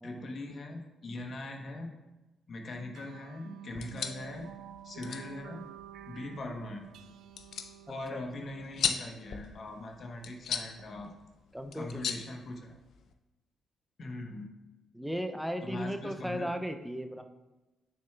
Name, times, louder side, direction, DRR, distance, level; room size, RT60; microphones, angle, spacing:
voice 1, 0.0-1.9 2.5-4.5 4.8-5.6 6.1-6.8 7.9-11.1 11.7-12.7 14.0-14.5 15.6-16.5, left 2 dB, 50° left, 2 dB, 1.0 m, -41 dB
sound 1, 2.9-9.8, right 11 dB, 75° right, 0.3 m, -51 dB
Epée qu'on dégaine, 3.7-13.1, left 7 dB, 65° left, 0.5 m, -39 dB
voice 2, 7.9-8.2 11.5-12.2 14.9-17.2, equal, ahead, 7 dB, 0.4 m, -36 dB
6.8 x 6.4 x 2.3 m, 1.1 s
cardioid pair, 90°, 0 cm